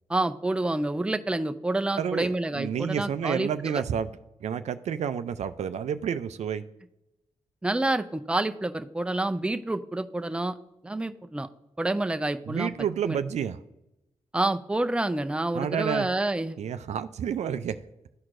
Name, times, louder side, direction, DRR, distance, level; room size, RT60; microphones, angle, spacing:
voice 1, 0.1-3.7 7.6-10.5 10.8-11.5 11.8-12.7 13.0-13.2 14.3-16.6, right 2 dB, 10° right, 8 dB, 0.5 m, -28 dB
voice 2, 2.0-4.1 4.4-6.6 12.5-13.6 15.5-16.1 16.6-17.8, right 8 dB, 65° right, 12 dB, 0.4 m, -30 dB
13.0 x 4.5 x 2.5 m, 0.90 s
supercardioid pair, 50°, 12 cm